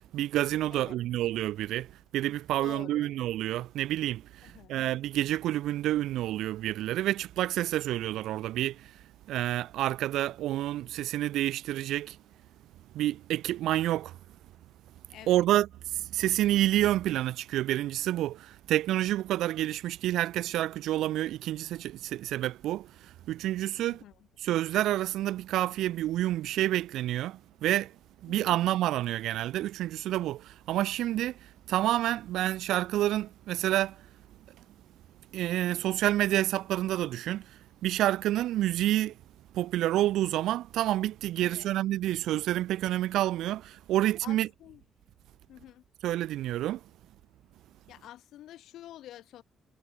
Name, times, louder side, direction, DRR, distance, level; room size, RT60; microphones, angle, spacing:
voice 1, 0.1-1.9 2.1-8.9 9.3-12.2 12.9-14.1 15.3-15.7 15.9-24.0 24.4-27.9 28.2-31.4 31.7-34.0 35.3-37.4 37.8-39.1 39.5-44.5 46.0-46.8, right 14 dB, 85° right, 1.0 m, -28 dB
voice 2, 0.7-1.0 2.6-3.2 4.4-4.8 15.1-15.5 23.8-24.3 28.3-28.6 41.4-41.7 43.9-44.8 45.5-45.8 47.9-49.4, left 13 dB, 80° left, 2.5 m, -49 dB
cardioid pair, 90°, 0 cm